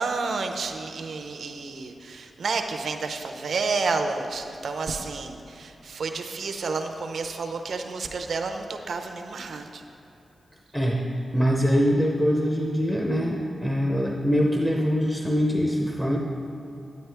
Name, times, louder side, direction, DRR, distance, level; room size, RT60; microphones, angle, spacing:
voice 1, 0.0-9.8, right 4 dB, 75° right, 5 dB, 0.6 m, -30 dB
voice 2, 10.7-11.1 11.3-16.2, equal, 5° left, -1 dB, 0.6 m, -23 dB
9.4 x 9.2 x 3.4 m, 2.8 s
wide cardioid pair, 115°, 0 cm